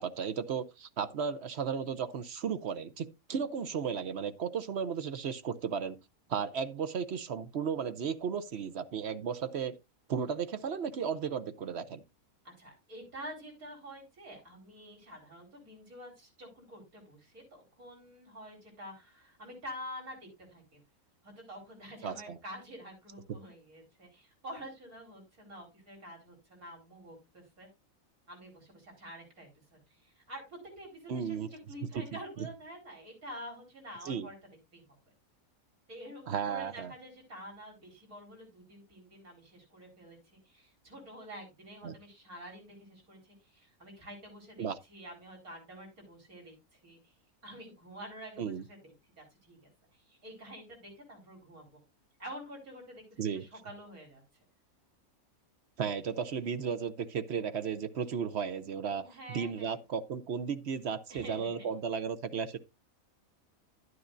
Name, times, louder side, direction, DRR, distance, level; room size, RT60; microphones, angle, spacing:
voice 1, 0.0-6.0 6.3-9.8 10.1-12.0 22.0-22.4 31.1-31.5 31.9-32.0 34.0-34.3 36.3-36.9 41.8-41.9 44.6-44.8 48.4-48.6 53.2-53.4 55.8-62.6, right 6 dB, 55° right, 0.9 m, -34 dB
voice 2, 12.4-20.8 21.2-27.7 28.3-34.3 34.7-34.8 35.9-47.1 47.4-51.8 52.2-54.2 58.9-59.8 61.1-61.6, equal, 80° right, 5.0 m, -48 dB
11.0 x 9.6 x 2.6 m
omnidirectional pair, 1.5 m